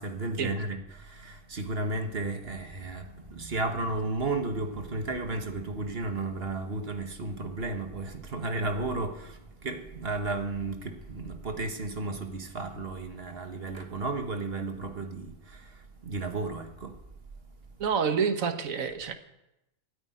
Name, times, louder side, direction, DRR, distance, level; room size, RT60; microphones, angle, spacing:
voice 1, 0.0-17.0, right 2 dB, 45° right, 1.5 m, -33 dB
voice 2, 17.8-19.1, right 6 dB, 70° right, 1.6 m, -28 dB
14.0 x 8.8 x 9.3 m
omnidirectional pair, 1.5 m